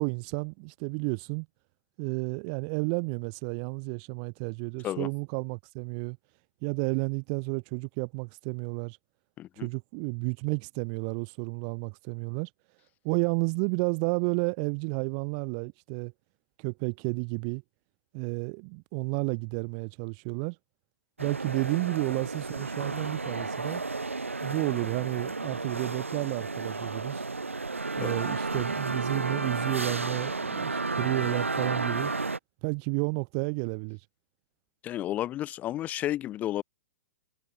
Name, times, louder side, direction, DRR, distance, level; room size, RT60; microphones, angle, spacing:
voice 1, 0.0-1.5 2.0-6.2 6.6-9.0 9.6-12.5 13.0-16.1 16.6-17.6 18.1-20.6 21.2-23.8 24.4-27.2 28.0-32.1 32.6-34.0, right 40 dB or more, 35° right, 0.6 m, -31 dB
voice 2, 9.4-9.7 28.0-28.1 30.7-30.8 34.8-36.6, left 13 dB, 25° left, 0.4 m, -32 dB
sound 1, 21.2-32.4, right 3 dB, 85° right, 0.6 m, -32 dB
figure-of-eight pair, 110°, 7 cm